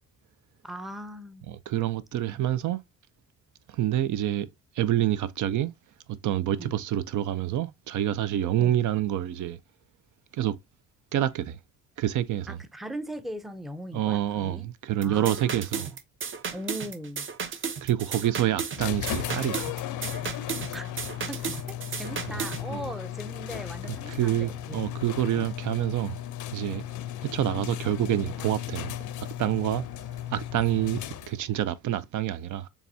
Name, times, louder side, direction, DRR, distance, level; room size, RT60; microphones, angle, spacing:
voice 1, 0.6-1.6 6.6-6.7 12.5-14.7 15.0-15.8 16.5-17.3 20.7-20.9 21.3-24.9 25.3-25.5, right 1 dB, ahead, 0.5 m, -39 dB
voice 2, 1.5-2.8 3.7-4.5 4.8-5.7 6.1-9.6 10.3-10.6 11.1-11.6 12.0-12.6 13.9-15.9 17.8-19.7 22.7-22.8 24.1-26.2 26.5-26.8 27.2-29.8 30.3-32.7, right 12 dB, 70° right, 0.5 m, -27 dB
sound 1, 15.0-22.6, right 6 dB, 40° right, 0.7 m, -34 dB
sound 2, 18.8-31.6, left 11 dB, 70° left, 0.6 m, -36 dB
7.0 x 2.3 x 2.6 m
cardioid pair, 95°, 32 cm